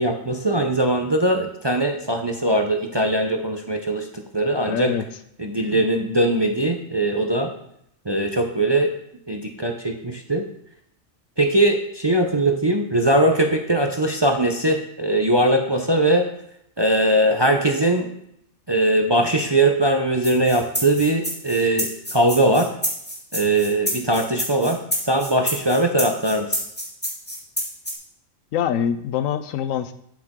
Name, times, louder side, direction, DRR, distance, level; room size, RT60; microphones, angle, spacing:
voice 1, 0.0-4.9 5.4-7.5 8.1-8.9 9.3-10.5 11.4-16.3 16.8-18.1 18.7-22.7 23.3-24.8 25.0-26.6, right 1 dB, 30° right, 4 dB, 0.5 m, -20 dB
voice 2, 4.6-5.0 5.7-5.9 28.5-29.9, left 8 dB, 80° left, 11 dB, 1.0 m, -24 dB
sound 1, 20.2-27.9, equal, 10° left, 1.8 m, -28 dB
8.3 x 7.9 x 3.7 m, 0.73 s
omnidirectional pair, 1.4 m